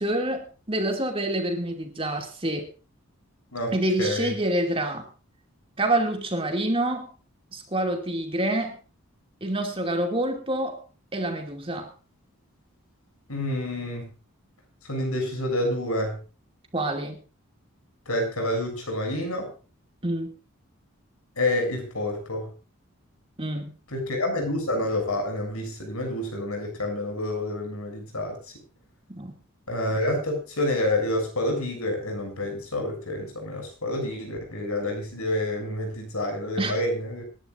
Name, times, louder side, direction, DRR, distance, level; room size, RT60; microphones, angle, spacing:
voice 1, 0.0-2.7 3.7-5.1 5.8-7.1 7.5-8.8 9.4-10.8 11.1-11.9 16.7-17.2 20.0-20.3 23.4-23.7 29.1-29.4 36.6-36.8, right 1 dB, 25° right, 4 dB, 2.5 m, -27 dB
voice 2, 3.5-4.3 13.3-14.1 14.9-16.2 18.1-19.5 21.4-22.5 23.9-28.4 29.7-37.2, left 1 dB, 80° left, 3 dB, 7.0 m, -28 dB
27.0 x 11.5 x 2.6 m, 0.33 s
head